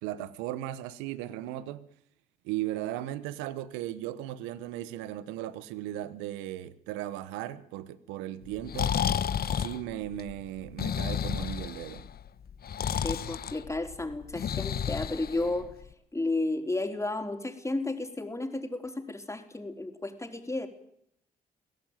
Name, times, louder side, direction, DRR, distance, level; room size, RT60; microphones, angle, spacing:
voice 1, 0.0-1.9 2.4-8.9 9.3-12.1, right 13 dB, 85° right, 1.0 m, -37 dB
Breathing, 8.5-15.9, left 8 dB, 55° left, 1.3 m, -32 dB
voice 2, 13.0-15.7 16.1-20.7, left 2 dB, 15° left, 4.5 m, -32 dB
22.5 x 17.0 x 9.2 m
hypercardioid pair, 50°, 19 cm